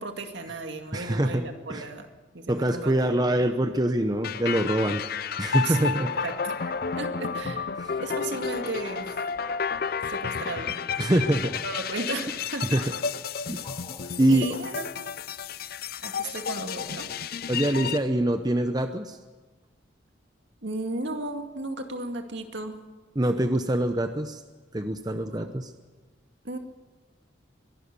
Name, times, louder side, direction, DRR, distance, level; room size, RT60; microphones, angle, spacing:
voice 1, 0.0-2.1 2.3-3.4 5.6-9.2 10.1-10.8 11.3-12.9 14.3-14.9 16.0-17.1 20.6-22.8 25.2-25.5 26.4-26.6, right 2 dB, 65° right, 5 dB, 2.2 m, -35 dB
voice 2, 0.9-1.9 2.5-5.0 5.4-6.1 7.8-8.0 11.0-11.5 12.7-12.8 13.5-13.7 14.2-14.5 17.5-19.2 23.2-24.4 24.7-25.7, right 1 dB, 20° right, 7 dB, 0.8 m, -24 dB
sound 1, 4.2-18.0, left 6 dB, 50° left, 0.5 m, -32 dB
sound 2, 5.7-17.6, left 2 dB, 25° left, 2.6 m, -49 dB
23.0 x 12.0 x 9.6 m, 1.3 s
head